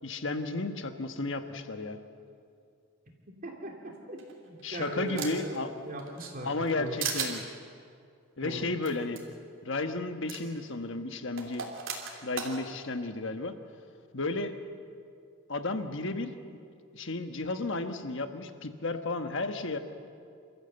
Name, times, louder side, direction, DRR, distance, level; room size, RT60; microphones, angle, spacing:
voice 1, 0.0-2.0 4.6-5.7 6.4-7.4 8.4-9.2 9.6-11.7 12.2-13.5 14.1-14.5 15.5-16.4 16.9-19.8, left 2 dB, 55° left, 7 dB, 1.3 m, -33 dB
voice 2, 3.4-6.5 6.8-6.9 8.4-8.6, right 1 dB, 40° right, 0 dB, 2.8 m, -39 dB
sound 1, 4.2-5.6 6.0-6.7 7.0-7.3 8.8-8.9 9.2-9.3 10.3-10.4 11.4-12.5, right 6 dB, 60° right, 3.2 m, -35 dB
28.5 x 14.0 x 8.0 m, 2.3 s
head